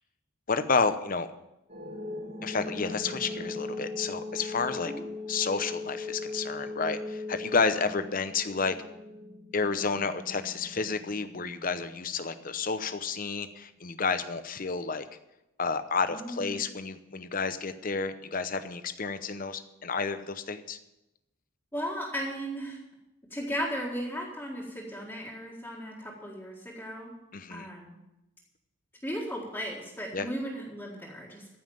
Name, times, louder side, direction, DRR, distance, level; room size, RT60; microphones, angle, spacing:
voice 1, 0.5-1.3 2.4-4.9 5.3-8.8 9.5-15.1 15.6-20.8 27.3-27.7 30.1-30.3, left 4 dB, 40° left, 11 dB, 0.8 m, -30 dB
sound 1, 1.7-12.7, left 2 dB, 30° right, 1.3 m, -40 dB
voice 2, 16.1-16.6 21.7-22.8 23.3-27.1 27.5-28.0 29.0-31.6, equal, 10° left, -5 dB, 1.8 m, -36 dB
14.5 x 5.7 x 8.9 m, 0.93 s
head